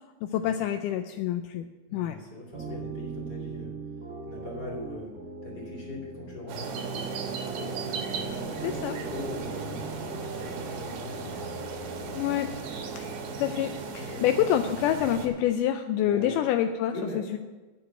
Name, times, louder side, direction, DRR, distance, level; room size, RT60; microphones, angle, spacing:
voice 1, 0.2-2.2 8.6-8.9 12.1-12.5 13.0-13.1 13.4-16.9 17.3-17.4, left 11 dB, 85° left, 7 dB, 1.9 m, -27 dB
voice 2, 1.9-3.8 4.2-7.8 8.1-11.3 14.0-14.4 16.0-16.5 16.9-17.3, left 2 dB, 30° left, -3 dB, 2.9 m, -41 dB
sound 1, 2.5-14.3, right 4 dB, 40° right, 3.5 m, -40 dB
Fixed-wing aircraft airplane, 6.5-15.5, right 1 dB, 10° right, 2.1 m, -49 dB
sound 2, 6.5-15.3, right 4 dB, 70° right, 2.8 m, -36 dB
9.5 x 7.2 x 7.8 m, 1.2 s
omnidirectional pair, 4.2 m